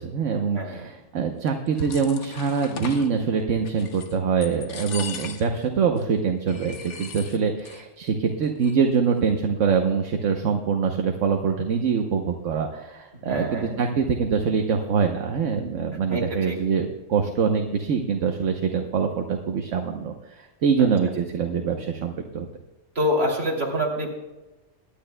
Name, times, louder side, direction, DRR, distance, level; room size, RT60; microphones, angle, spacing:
voice 1, 0.0-22.5, right 6 dB, 75° right, 3 dB, 1.2 m, -24 dB
voice 2, 0.5-0.9 13.3-13.8 16.1-16.6 22.9-24.1, equal, 50° right, -1 dB, 3.0 m, -26 dB
sound 1, 1.5-3.1 3.6-4.2 4.4-5.6 6.0-6.1 6.5-7.8 8.1-8.2 8.4-9.0, left 6 dB, 65° left, 1.3 m, -39 dB
23.0 x 10.5 x 2.2 m, 1.1 s
omnidirectional pair, 1.3 m